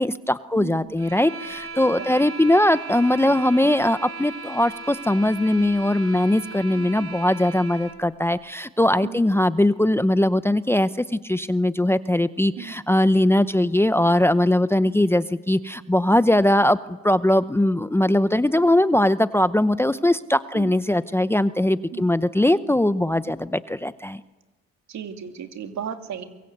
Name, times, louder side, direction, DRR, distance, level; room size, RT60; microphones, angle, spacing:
voice 1, 0.0-24.2, left 1 dB, 10° left, 13 dB, 0.7 m, -20 dB
voice 2, 0.5-1.0 2.0-2.3 6.7-7.1 9.0-9.2 12.6-12.7 20.5-20.7 21.9-22.1 24.9-26.2, right 8 dB, 65° right, 5 dB, 2.8 m, -35 dB
sound 1, 1.0-8.0, right 3 dB, 50° right, 3.9 m, -37 dB
24.0 x 22.5 x 8.1 m, 1.2 s
cardioid pair, 90°, 30 cm